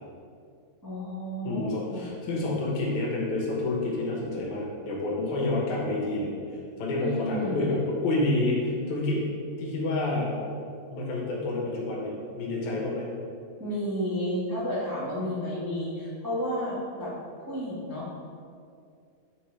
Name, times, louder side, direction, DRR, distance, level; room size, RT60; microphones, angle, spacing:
voice 1, 0.8-2.1 6.9-7.6 13.6-17.1 17.4-18.2, equal, 20° right, -9 dB, 0.6 m, -32 dB
voice 2, 1.4-6.3 6.8-9.3 9.6-10.3 10.9-13.1, left 2 dB, 75° left, -3 dB, 2.6 m, -28 dB
8.1 x 4.1 x 4.6 m, 2.4 s
omnidirectional pair, 3.4 m